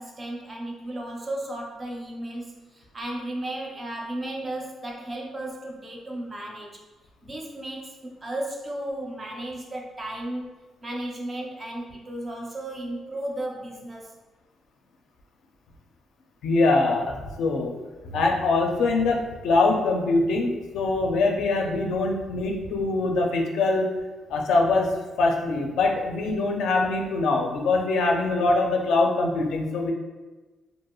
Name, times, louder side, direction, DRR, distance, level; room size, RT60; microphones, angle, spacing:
voice 1, 0.0-6.8 7.2-10.5 10.8-14.1, right 1 dB, 20° right, -1 dB, 0.4 m, -34 dB
voice 2, 16.4-17.7 18.0-23.9 24.3-24.9 25.2-29.9, left 3 dB, 80° left, 1 dB, 0.4 m, -23 dB
2.5 x 2.3 x 2.9 m, 1.2 s
cardioid pair, 160°, 0 cm